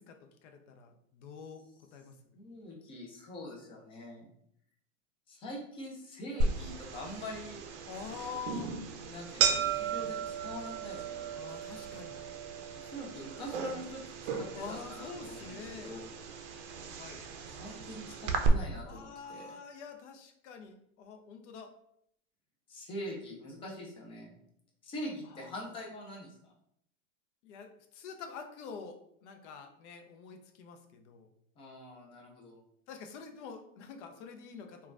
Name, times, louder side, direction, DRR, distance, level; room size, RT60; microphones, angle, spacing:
voice 1, 0.0-1.6 1.9-2.4 7.9-8.7 11.4-12.2 14.5-16.0 16.7-17.2 18.8-21.7 25.3-25.5 27.4-31.3 32.9-34.9, left 6 dB, 60° left, 5 dB, 0.6 m, -46 dB
voice 2, 2.3-4.3 5.3-7.6 8.4-8.6 9.0-11.2 12.7-16.1 17.6-19.5 22.7-24.4 24.8-26.5 31.6-32.6, equal, 15° left, -2 dB, 0.3 m, -44 dB
sound 1, 6.4-18.5, right 5 dB, 60° right, 0.5 m, -36 dB
3.0 x 2.3 x 2.4 m, 0.72 s
supercardioid pair, 130°, 41 cm